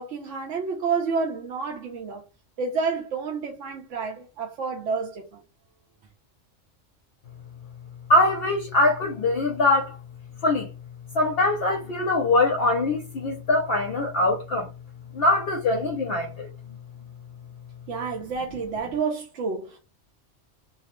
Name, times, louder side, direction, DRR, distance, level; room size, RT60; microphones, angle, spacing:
voice 1, 0.0-2.2 2.6-5.4 17.9-19.8, right 5 dB, 75° right, 1.0 m, -29 dB
voice 2, 8.1-10.0 10.4-10.7 11.1-14.7 15.1-16.5, left 2 dB, 60° left, 0.7 m, -22 dB
2.8 x 2.0 x 2.9 m
omnidirectional pair, 1.3 m